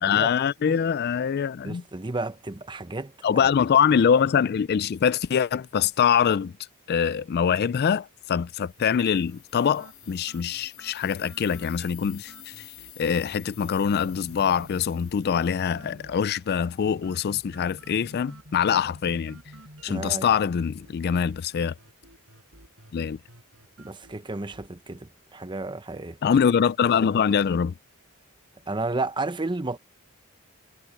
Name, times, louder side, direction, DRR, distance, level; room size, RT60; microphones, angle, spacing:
voice 1, 0.0-1.8 3.2-6.5 6.9-12.6 13.0-19.4 19.8-21.7 22.9-23.2 26.2-27.7, left 7 dB, 45° left, 0.3 m, -24 dB
voice 2, 1.6-3.5 19.9-20.3 23.8-26.2 28.7-29.8, right 2 dB, 20° right, 0.8 m, -32 dB
sound 1, 8.3-16.2, left 13 dB, 75° left, 1.8 m, -50 dB
sound 2, 8.8-24.8, right 2 dB, 65° right, 7.1 m, -54 dB
sound 3, 15.4-20.4, equal, 45° right, 4.9 m, -50 dB
head